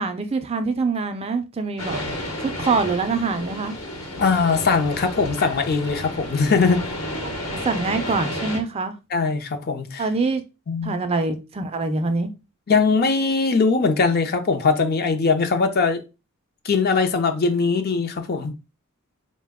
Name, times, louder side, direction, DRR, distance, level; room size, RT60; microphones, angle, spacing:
voice 1, 0.0-2.0 2.4-3.8 7.5-9.0 10.0-10.4 10.8-12.3, right 4 dB, 30° right, 0.4 m, -24 dB
sound 1, 1.8-8.6, left 1 dB, 75° left, 1.0 m, -31 dB
voice 2, 4.2-6.9 9.1-10.0 10.7-11.0 12.7-16.0 16.6-18.5, left 4 dB, 45° left, 0.5 m, -21 dB
4.0 x 2.1 x 3.5 m
head